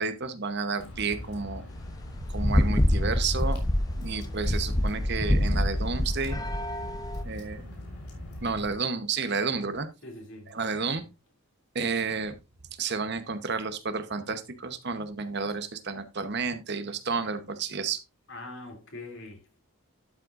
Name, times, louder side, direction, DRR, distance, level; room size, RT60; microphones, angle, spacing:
voice 1, 0.0-1.6 2.3-3.6 4.0-6.4 7.2-7.7 8.4-9.9 10.5-11.0 11.7-12.4 12.8-18.0, right 4 dB, 50° right, 0.9 m, -31 dB
Water / Drip, 0.8-8.7, left 1 dB, 85° left, 3.6 m, -41 dB
sound 1, 1.8-7.2, left 1 dB, 15° left, 0.7 m, -26 dB
voice 2, 10.0-11.0 18.3-19.6, left 2 dB, 55° left, 2.7 m, -44 dB
12.0 x 7.4 x 2.5 m
head